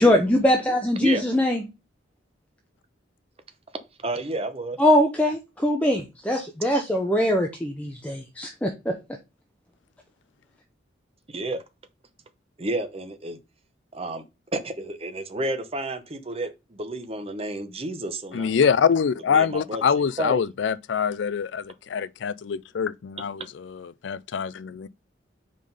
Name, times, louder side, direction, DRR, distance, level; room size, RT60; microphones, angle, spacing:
voice 1, 0.0-1.6 4.8-9.0, left 1 dB, 5° left, 0.7 m, -22 dB
voice 2, 4.0-4.8 11.3-11.6 12.6-13.4 13.9-14.2 14.5-18.7 19.3-20.4, right 2 dB, 30° right, 0.9 m, -31 dB
voice 3, 18.3-24.9, left 6 dB, 75° left, 0.4 m, -25 dB
5.0 x 3.8 x 5.3 m
head